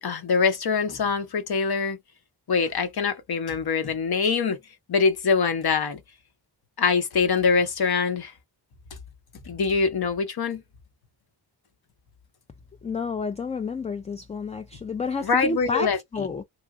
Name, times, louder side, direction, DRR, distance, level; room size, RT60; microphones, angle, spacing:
voice 1, 0.0-2.0 2.5-4.6 4.9-6.0 6.8-8.3 9.5-10.6 15.2-16.3, left 5 dB, 55° left, 0.8 m, -24 dB
voice 2, 12.8-16.4, left 4 dB, 15° left, 0.3 m, -30 dB
2.8 x 2.4 x 2.4 m
cardioid pair, 45°, 46 cm